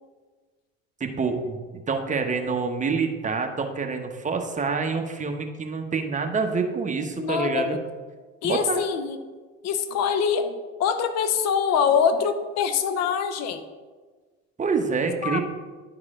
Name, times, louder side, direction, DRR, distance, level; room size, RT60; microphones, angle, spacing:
voice 1, 1.0-1.6 1.9-7.8 8.4-8.8 14.6-15.4, right 4 dB, 25° right, 4 dB, 1.1 m, -26 dB
voice 2, 7.2-7.8 8.4-9.2 9.6-13.6 15.2-15.4, left 7 dB, 60° left, 10 dB, 0.8 m, -24 dB
11.0 x 4.8 x 3.7 m, 1.4 s
supercardioid pair, 85°, 29 cm